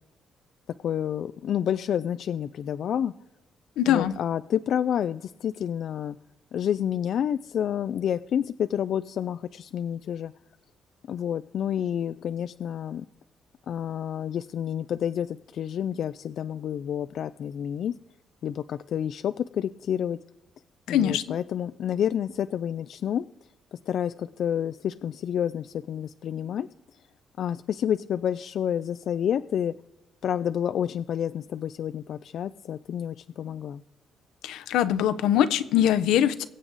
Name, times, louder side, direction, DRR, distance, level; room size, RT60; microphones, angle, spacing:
voice 1, 0.8-3.1 3.8-6.2 6.5-10.3 11.1-13.1 13.7-17.9 18.4-20.2 20.9-23.3 23.7-26.7 27.4-29.7 30.2-33.8, left 9 dB, 65° left, 12 dB, 0.3 m, -29 dB
voice 2, 3.8-4.1 20.9-21.2 34.4-36.4, left 10 dB, 90° left, 13 dB, 0.7 m, -22 dB
22.0 x 7.7 x 4.0 m, 0.95 s
cardioid pair, 90°, 0 cm